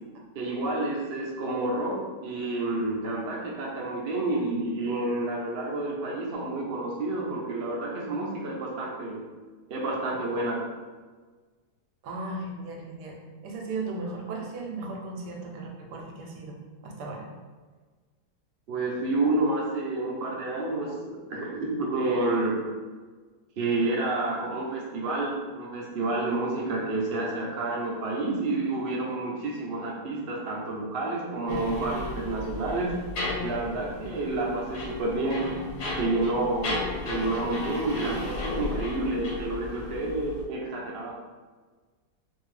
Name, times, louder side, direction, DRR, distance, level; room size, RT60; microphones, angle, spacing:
voice 1, 0.3-9.2 9.7-10.6 18.7-22.6 23.6-33.0 33.4-35.5 36.0-41.2, right 2 dB, 55° right, -3 dB, 0.6 m, -29 dB
voice 2, 12.0-17.3, right 3 dB, 80° right, 0 dB, 1.2 m, -36 dB
sound 1, 31.5-40.4, left 2 dB, 80° left, 1.2 m, -35 dB
2.8 x 2.6 x 3.1 m, 1.4 s
omnidirectional pair, 1.7 m